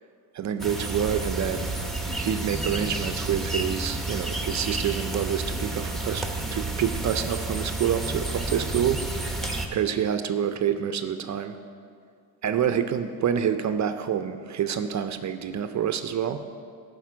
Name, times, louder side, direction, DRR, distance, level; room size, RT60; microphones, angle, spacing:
voice 1, 0.3-1.8 2.1-6.3 6.5-9.0 9.7-11.6 12.4-16.5, right 8 dB, 40° right, 9 dB, 0.5 m, -27 dB
sound 1, 0.6-9.7, right 2 dB, ahead, 1.0 m, -30 dB
11.5 x 5.1 x 6.1 m, 2.2 s
supercardioid pair, 90°, 45 cm